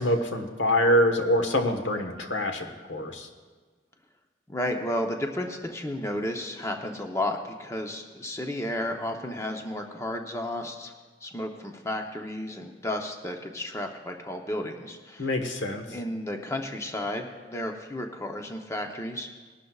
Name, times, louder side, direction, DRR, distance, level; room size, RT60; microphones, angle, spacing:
voice 1, 0.0-3.3 15.2-15.8, left 1 dB, 90° left, 5 dB, 1.3 m, -25 dB
voice 2, 4.5-10.9 11.2-15.3 15.9-19.3, left 1 dB, 15° left, 3 dB, 0.7 m, -32 dB
20.0 x 12.0 x 2.4 m, 1.4 s
head